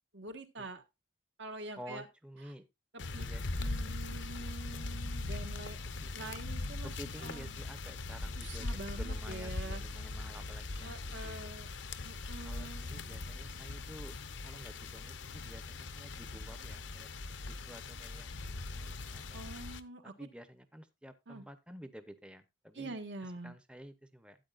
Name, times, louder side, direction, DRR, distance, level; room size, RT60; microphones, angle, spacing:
voice 1, 0.1-0.8 1.4-2.0 3.1-3.3 3.6-5.8 6.1-6.9 7.2-7.5 8.4-9.8 10.8-11.7 12.0-12.8 19.3-20.3 21.3-21.4 22.7-23.5, right 2 dB, 65° right, 8 dB, 1.5 m, -45 dB
voice 2, 1.8-2.7 3.2-4.5 6.0-6.4 6.8-11.5 12.4-14.1 14.4-19.4 20.0-24.4, equal, 5° right, 10 dB, 0.7 m, -52 dB
sound 1, 3.0-19.8, left 3 dB, 70° left, 0.8 m, -40 dB
13.0 x 8.8 x 2.4 m, 0.23 s
head